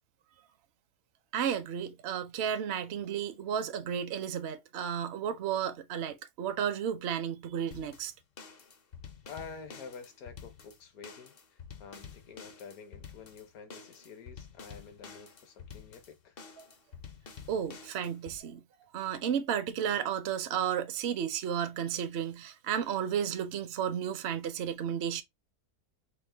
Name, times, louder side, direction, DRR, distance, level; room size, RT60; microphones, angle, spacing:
voice 1, 1.3-8.1 16.6-16.7 17.5-18.6 18.9-25.2, right 8 dB, 60° right, 0.7 m, -33 dB
sound 1, 7.7-18.4, left 6 dB, 50° left, 0.7 m, -49 dB
voice 2, 9.2-11.3 11.8-16.4, left 5 dB, 70° left, 1.3 m, -48 dB
4.6 x 2.2 x 3.3 m
omnidirectional pair, 1.7 m